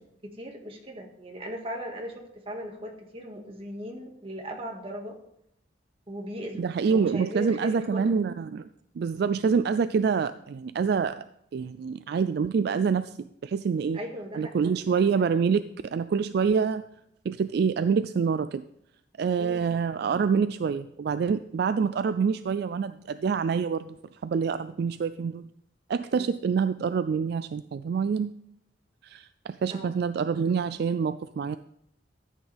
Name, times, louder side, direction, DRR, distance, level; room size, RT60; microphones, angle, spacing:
voice 1, 0.2-5.2 6.1-8.3 13.9-14.8 19.4-19.7 26.2-26.3 29.7-30.0, equal, 30° right, 2 dB, 1.8 m, -38 dB
voice 2, 6.6-8.7 9.0-11.3 11.5-13.1 13.4-14.0 14.3-16.8 17.2-18.6 19.2-24.0 24.2-25.5 25.9-28.3 29.0-31.6, right 6 dB, 60° right, 13 dB, 0.3 m, -26 dB
13.5 x 8.7 x 3.4 m, 0.76 s
head